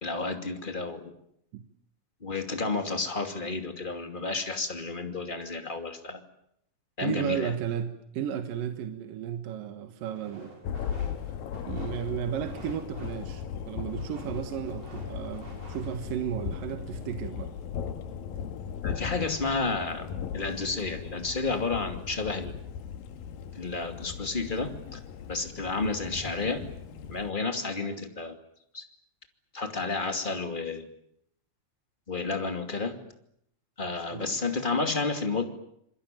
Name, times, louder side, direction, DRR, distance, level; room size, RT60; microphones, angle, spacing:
voice 1, 0.0-1.0 2.2-6.2 7.0-7.5 18.8-20.1 20.3-22.5 23.6-25.0 25.3-26.6 27.1-28.3 28.7-28.8 29.5-30.9 32.1-32.9 33.8-35.4, left 3 dB, 15° left, 6 dB, 2.1 m, -31 dB
voice 2, 7.0-10.5 11.6-17.5 27.8-28.0 34.1-34.4, right 9 dB, 75° right, 8 dB, 2.9 m, -34 dB
sound 1, 10.1-16.0, right 2 dB, 45° right, 7.2 m, -51 dB
Thunder, 10.6-27.3, left 7 dB, 80° left, 3.2 m, -38 dB
27.0 x 22.5 x 9.1 m, 0.73 s
omnidirectional pair, 4.1 m